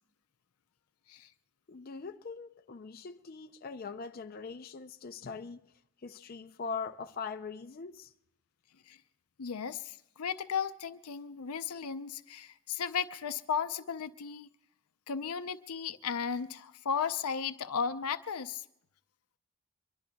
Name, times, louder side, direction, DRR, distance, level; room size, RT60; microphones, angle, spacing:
voice 1, 1.7-5.6 6.0-8.1, left 5 dB, 45° left, 0.5 m, -41 dB
voice 2, 9.4-14.5 15.1-18.6, left 6 dB, 85° left, 0.6 m, -35 dB
25.5 x 22.5 x 2.3 m
head